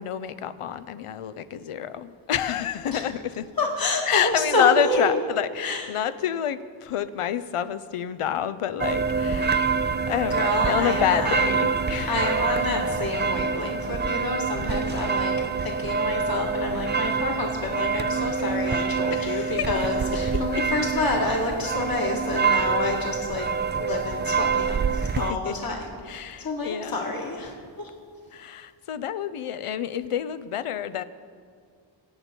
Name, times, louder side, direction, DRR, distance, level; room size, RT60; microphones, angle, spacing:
voice 1, 0.0-3.5 4.1-9.6 10.1-12.2 19.1-19.7 20.3-20.4 25.0-25.6 26.1-27.1 28.3-31.0, left 10 dB, 90° left, 14 dB, 0.7 m, -28 dB
voice 2, 3.6-5.1 5.6-5.9 10.3-11.4 12.1-15.3 15.6-23.5 23.7-25.8 26.4-27.9, left 2 dB, 45° left, -1 dB, 1.9 m, -28 dB
sound 1, 8.8-25.3, right 5 dB, 25° right, 0.3 m, -26 dB
24.0 x 8.6 x 4.4 m, 2.1 s
wide cardioid pair, 105°, 50 cm